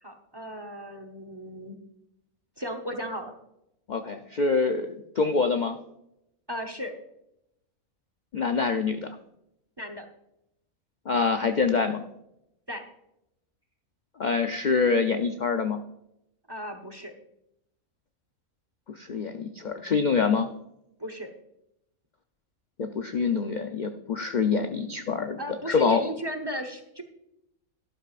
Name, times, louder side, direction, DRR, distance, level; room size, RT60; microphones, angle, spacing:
voice 1, 0.0-1.8 2.6-3.3 6.5-6.9 9.8-10.1 12.7-12.9 16.5-17.1 21.0-21.3 25.4-27.0, equal, 20° right, 6 dB, 0.9 m, -35 dB
voice 2, 3.9-5.8 8.3-9.1 11.1-12.0 14.2-15.8 19.0-20.5 22.8-25.4 25.7-26.0, left 5 dB, 50° left, 7 dB, 0.5 m, -25 dB
12.5 x 11.5 x 2.5 m, 0.82 s
omnidirectional pair, 1.5 m